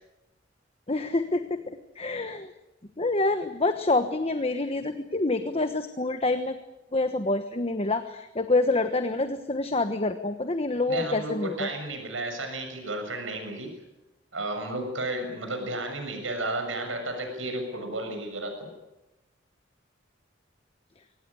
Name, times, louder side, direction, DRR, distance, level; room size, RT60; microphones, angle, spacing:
voice 1, 0.9-2.5 3.0-6.6 6.9-11.7, left 2 dB, 30° left, 9 dB, 1.2 m, -27 dB
voice 2, 10.9-13.7 14.3-18.7, right 1 dB, 90° right, 4 dB, 6.9 m, -33 dB
24.5 x 18.5 x 9.8 m, 1.0 s
head